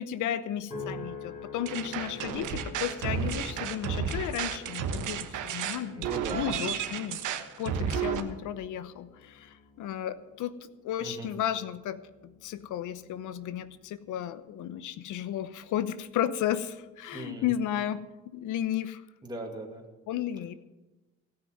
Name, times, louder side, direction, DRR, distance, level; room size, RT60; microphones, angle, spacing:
voice 1, 0.0-7.2 7.6-10.6 10.8-18.0 18.3-19.0 20.1-20.5, left 10 dB, 85° left, 14 dB, 0.9 m, -33 dB
sound 1, 0.7-15.2 15.7-16.1, left 4 dB, 25° left, 6.0 m, -48 dB
sound 2, 1.7-8.2, right 7 dB, 90° right, 1.2 m, -32 dB
voice 2, 3.0-3.5 5.9-6.4 11.0-11.3 17.1-17.5 19.2-19.8, right 2 dB, 15° right, 0 dB, 2.5 m, -40 dB
17.0 x 5.8 x 9.4 m, 1.1 s
cardioid pair, 90°, 30 cm